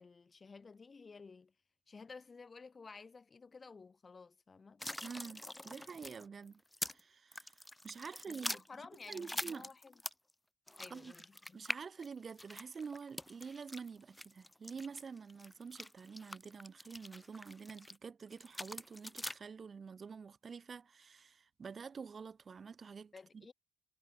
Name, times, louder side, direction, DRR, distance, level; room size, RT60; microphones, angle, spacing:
voice 1, 0.0-1.5 1.9-4.8 8.3-9.9 10.8-11.6 23.1-23.5, left 4 dB, 35° left, 3.2 m, -54 dB
sound 1, 4.8-7.0 7.3-10.3 10.7-18.0 18.3-19.4, left 1 dB, 10° left, 0.4 m, -45 dB
voice 2, 5.0-6.6 6.9-8.6 9.0-9.7 10.9-11.1 11.5-23.5, right 5 dB, 40° right, 4.6 m, -48 dB
cardioid pair, 90°, 0 cm